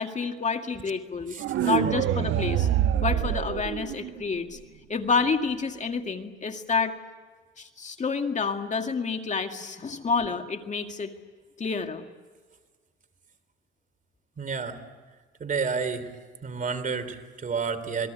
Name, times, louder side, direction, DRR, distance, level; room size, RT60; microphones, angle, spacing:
voice 1, 0.0-1.4 1.6-2.7 3.0-4.6 4.9-7.0 7.6-11.1 11.6-12.1, left 5 dB, 35° left, 5 dB, 2.1 m, -29 dB
voice 2, 1.3-1.7 14.4-14.8 15.4-16.2 16.4-18.1, right 5 dB, 40° right, 10 dB, 3.4 m, -30 dB
sound 1, 1.4-4.4, right 10 dB, 90° right, 1.5 m, -25 dB
28.0 x 22.0 x 8.2 m, 1.4 s
cardioid pair, 90°, 20 cm